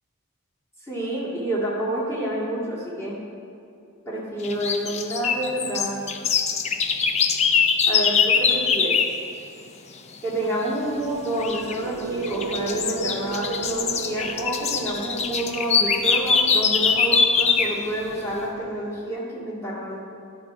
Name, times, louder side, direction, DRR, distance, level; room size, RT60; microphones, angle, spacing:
voice 1, 0.8-3.2 4.1-6.0 7.9-9.0 10.2-20.0, right 1 dB, 15° left, -7 dB, 2.0 m, -28 dB
sound 1, 4.4-9.2 11.4-11.8 12.2-17.8, left 5 dB, 30° left, 0.4 m, -22 dB
sound 2, 10.9-19.0, right 4 dB, 85° right, 0.4 m, -36 dB
11.0 x 5.2 x 4.7 m, 2.6 s
head